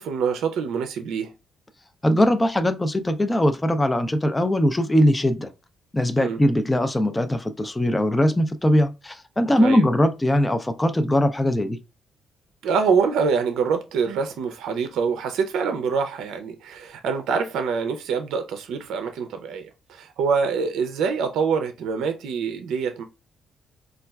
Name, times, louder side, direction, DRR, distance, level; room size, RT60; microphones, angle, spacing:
voice 1, 0.0-1.3 6.2-6.4 9.6-9.8 12.6-23.0, right 5 dB, 85° right, 0.4 m, -25 dB
voice 2, 2.0-5.5 5.9-11.8, left 1 dB, 15° left, 0.4 m, -21 dB
4.2 x 2.3 x 2.3 m
cardioid pair, 90°, 0 cm